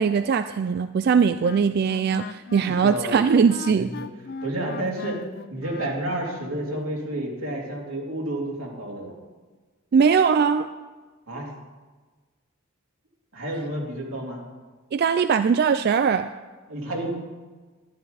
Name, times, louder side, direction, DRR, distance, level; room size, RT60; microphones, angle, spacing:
voice 1, 0.0-3.9 9.9-10.7 14.9-16.3, right 6 dB, 50° right, 10 dB, 0.3 m, -20 dB
Wind instrument woodwind instrument, 1.1-6.5, left 4 dB, 50° left, 0.4 m, -39 dB
voice 2, 2.6-3.2 3.7-4.1 4.4-5.2 5.5-9.1 11.3-11.5 13.3-14.4 16.7-17.1, right 1 dB, 85° right, -3 dB, 3.0 m, -30 dB
12.0 x 11.0 x 4.1 m, 1.3 s
head